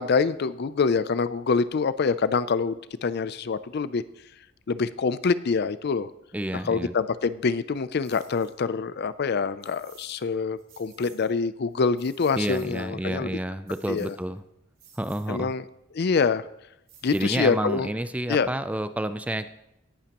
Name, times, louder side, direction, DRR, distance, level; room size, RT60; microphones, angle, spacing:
voice 1, 0.0-4.0 4.7-6.1 6.5-13.4 13.9-14.1 15.3-15.6 15.9-16.4 17.0-17.9 18.3-18.5, left 5 dB, 50° left, 15 dB, 0.4 m, -25 dB
voice 2, 6.3-6.9 12.4-14.4 15.0-15.5 17.1-19.5, right 1 dB, 5° right, 11 dB, 0.4 m, -29 dB
sound 1, 8.0-8.5 9.6-10.2 10.6-11.3 11.7-12.9 13.7-14.4 14.8-15.3 16.9-17.7, right 6 dB, 50° right, 4.1 m, -54 dB
17.5 x 11.0 x 3.0 m, 0.84 s
head